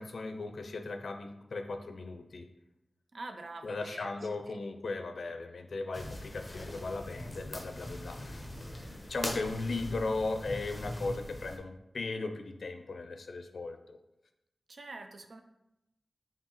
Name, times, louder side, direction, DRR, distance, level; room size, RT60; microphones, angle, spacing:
voice 1, 0.0-2.5 3.6-8.4 8.8-14.0, left 3 dB, 75° left, 6 dB, 0.4 m, -37 dB
voice 2, 3.1-4.6 14.7-15.4, right 2 dB, 65° right, 5 dB, 0.4 m, -46 dB
sound 1, 5.9-11.6, left 1 dB, 15° left, 0.6 m, -41 dB
4.5 x 3.5 x 3.0 m, 0.88 s
wide cardioid pair, 65°, 0 cm